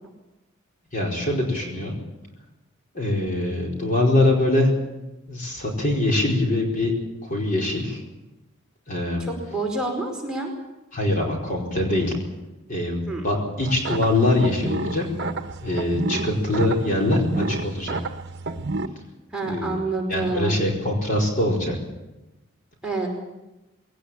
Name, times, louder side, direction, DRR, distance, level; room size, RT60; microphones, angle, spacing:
voice 1, 0.9-2.0 2.9-4.7 5.3-6.9 7.2-8.0 8.9-9.2 10.9-12.1 12.7-15.1 15.6-18.0 19.4-19.8 20.1-21.8, left 1 dB, 40° left, -1 dB, 4.6 m, -23 dB
voice 2, 9.2-10.5 13.1-13.2 19.3-20.6 22.8-23.1, right 2 dB, 5° right, -3 dB, 5.0 m, -28 dB
sound 1, 13.6-18.9, right 3 dB, 50° right, 1.1 m, -30 dB
21.0 x 18.5 x 8.6 m, 1.0 s
head